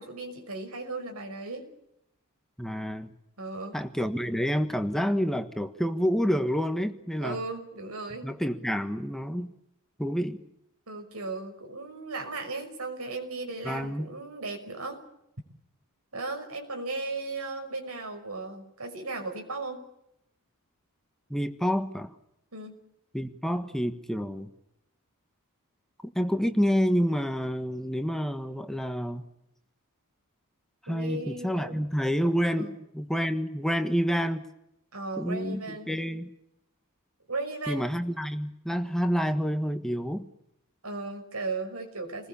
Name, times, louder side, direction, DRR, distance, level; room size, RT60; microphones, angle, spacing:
voice 1, 0.0-1.7 3.4-3.8 7.2-8.3 10.9-15.1 16.1-19.8 22.5-22.8 30.9-31.8 32.6-32.7 34.9-35.9 37.3-37.9 40.8-42.3, right 3 dB, 85° right, 4 dB, 5.9 m, -36 dB
voice 2, 2.6-3.1 3.7-7.4 8.2-9.5 10.0-10.4 13.6-14.1 21.3-22.1 23.1-24.5 26.1-29.3 30.8-34.4 35.2-36.3 37.7-40.3, equal, ahead, 7 dB, 1.4 m, -28 dB
29.5 x 20.5 x 7.2 m, 0.81 s
head